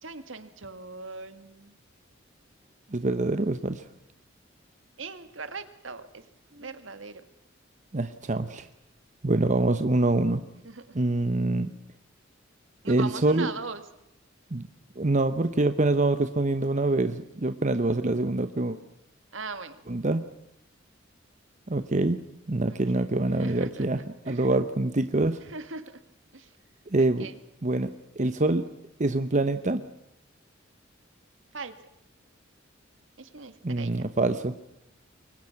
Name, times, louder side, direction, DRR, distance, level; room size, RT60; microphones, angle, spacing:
voice 1, 0.0-1.8 5.0-6.3 6.6-7.2 10.6-11.0 12.8-13.8 19.3-19.9 22.7-22.8 23.3-24.5 25.4-26.0 26.3-26.6 27.0-27.4 31.5-31.7 33.2-34.1, right 4 dB, 70° right, 10 dB, 1.9 m, -40 dB
voice 2, 2.9-3.8 6.6-6.7 7.9-8.7 9.2-10.4 10.9-11.7 12.9-13.5 14.5-14.7 15.0-18.8 19.9-20.2 21.7-22.2 22.5-24.0 24.3-25.4 26.9-27.3 27.6-28.6 29.0-29.8 33.6-34.5, right 2 dB, 40° right, 9 dB, 1.0 m, -25 dB
28.5 x 23.5 x 5.9 m, 0.83 s
head